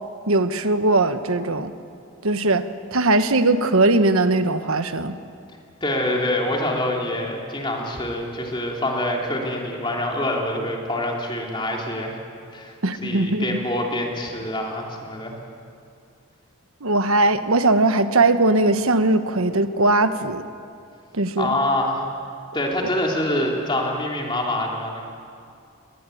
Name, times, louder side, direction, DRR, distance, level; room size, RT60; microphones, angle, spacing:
voice 1, 0.3-1.7 2.2-2.6 2.9-5.1 12.8-13.6 16.8-20.4 21.1-21.5, right 2 dB, 80° right, 10 dB, 1.2 m, -19 dB
voice 2, 5.8-12.2 12.5-12.7 13.0-15.4 21.4-22.0 22.5-25.0, left 1 dB, 20° left, -1 dB, 3.2 m, -25 dB
21.0 x 20.0 x 9.3 m, 2.4 s
head